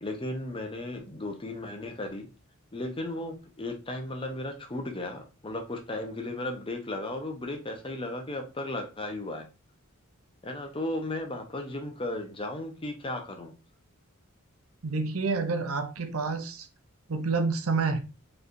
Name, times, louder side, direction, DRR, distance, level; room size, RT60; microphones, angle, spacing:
voice 1, 0.0-2.3 2.7-9.5 10.4-13.5, left 1 dB, 25° left, 0.8 m, -35 dB
voice 2, 14.8-16.7 17.1-18.0, right 4 dB, 80° right, 0.7 m, -28 dB
4.6 x 3.3 x 2.6 m
head